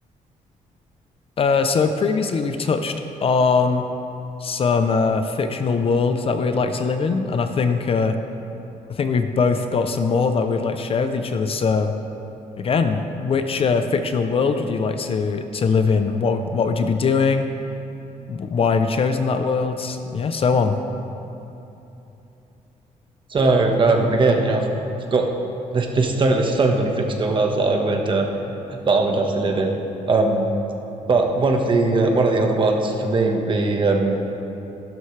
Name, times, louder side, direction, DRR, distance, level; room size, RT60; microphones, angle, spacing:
voice 1, 1.4-3.0 3.2-3.9 4.4-8.2 8.9-11.9 12.6-17.5 18.3-20.8, left 5 dB, 40° left, 8 dB, 0.6 m, -21 dB
voice 2, 23.3-24.7 25.1-25.3 25.7-28.3 28.7-29.7 30.1-30.5 31.1-34.2, right 3 dB, 35° right, 2 dB, 1.3 m, -19 dB
14.5 x 12.0 x 3.3 m, 2.9 s
cardioid pair, 120°, 14 cm